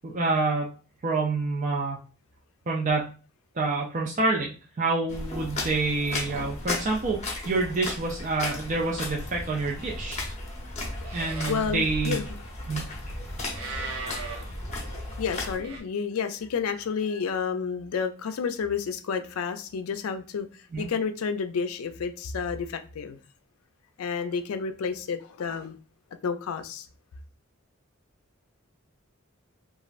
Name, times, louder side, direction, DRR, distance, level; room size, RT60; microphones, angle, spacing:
voice 1, 0.0-0.7 1.0-2.0 2.7-3.1 3.6-10.2 11.1-12.2 12.7-12.8 20.7-20.9, right 3 dB, 35° right, -2 dB, 0.4 m, -27 dB
sound 1, 5.1-15.6, left 2 dB, 30° left, 0.7 m, -36 dB
Livestock farm animals working animals, 9.2-15.8, right 2 dB, 75° right, 1.0 m, -39 dB
voice 2, 11.5-12.2 15.2-20.5 20.8-23.2 24.0-25.8 26.2-26.9, left 6 dB, 85° left, 9 dB, 0.4 m, -30 dB
3.1 x 2.4 x 2.4 m, 0.35 s
head